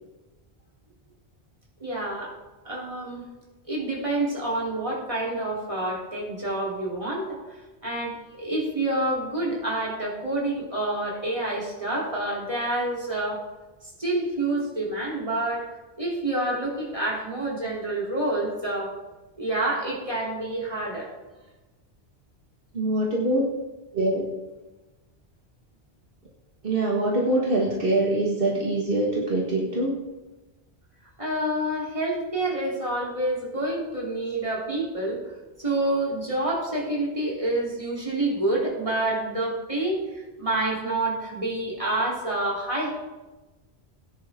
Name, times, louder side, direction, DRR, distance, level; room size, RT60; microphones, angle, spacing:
voice 1, 1.8-2.3 2.7-3.2 3.7-7.4 7.8-13.4 14.0-15.7 16.0-18.9 19.4-21.1 31.2-35.2 35.6-42.9, right 1 dB, 30° right, -4 dB, 3.5 m, -28 dB
voice 2, 22.7-23.5 23.9-24.3 26.6-30.0, right 1 dB, 60° right, -3 dB, 1.9 m, -24 dB
17.0 x 10.5 x 3.7 m, 1.1 s
omnidirectional pair, 1.1 m